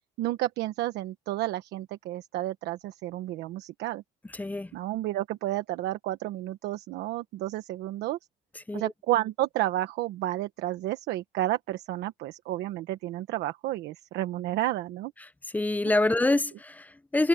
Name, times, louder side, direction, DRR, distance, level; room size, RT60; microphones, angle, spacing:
voice 1, 0.2-4.0 4.7-8.2 8.7-15.1, right 15 dB, 85° right, 1.2 m, -31 dB
voice 2, 4.3-4.7 8.7-8.9 15.5-17.3, left 2 dB, 10° left, 0.7 m, -26 dB
cardioid pair, 110°, 17 cm